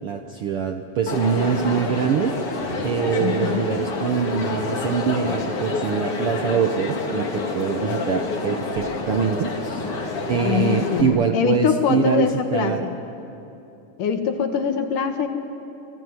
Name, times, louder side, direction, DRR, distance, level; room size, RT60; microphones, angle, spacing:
voice 1, 0.0-2.3 2.8-12.8, right 7 dB, 65° right, 5 dB, 1.4 m, -24 dB
Crowd, 1.1-11.0, left 3 dB, 45° left, 3.3 m, -28 dB
voice 2, 3.2-3.6 10.4-12.9 14.0-15.3, left 7 dB, 75° left, 5 dB, 3.3 m, -23 dB
29.5 x 20.5 x 9.6 m, 2.8 s
omnidirectional pair, 3.8 m